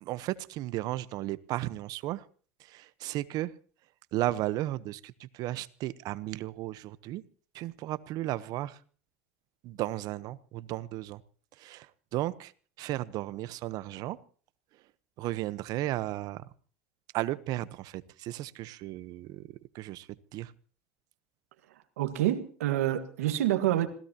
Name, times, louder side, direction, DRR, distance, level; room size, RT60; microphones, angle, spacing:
voice 1, 0.0-2.3 2.6-3.5 4.1-7.2 7.5-8.8 9.6-11.2 11.5-12.5 12.8-14.2 14.7-14.8 15.2-16.5 17.1-20.5, right 15 dB, 55° right, 16 dB, 1.0 m, -35 dB
voice 2, 22.0-23.9, right 13 dB, 85° right, 8 dB, 1.7 m, -27 dB
26.5 x 16.5 x 3.0 m, 0.42 s
supercardioid pair, 95°, 8 cm